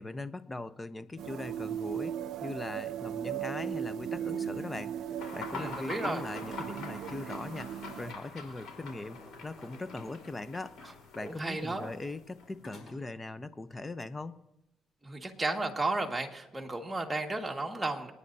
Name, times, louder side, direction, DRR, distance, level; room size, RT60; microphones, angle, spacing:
voice 1, 0.0-5.0 5.3-7.7 8.0-10.8 11.2-14.4, left 2 dB, 20° left, 13 dB, 0.8 m, -40 dB
sound 1, 1.2-8.1, right 9 dB, 80° right, 0.5 m, -37 dB
sound 2, 4.4-5.9 6.3-7.0 8.5-10.6 12.6-13.3, left 3 dB, 55° left, 4.6 m, -55 dB
sound 3, 5.2-12.7, left 4 dB, 80° left, 4.2 m, -45 dB
voice 2, 5.5-6.2 10.8-10.9 11.2-11.9 15.0-18.1, right 2 dB, 15° right, 1 dB, 1.8 m, -33 dB
28.0 x 9.9 x 2.7 m, 0.94 s
cardioid pair, 90°, 0 cm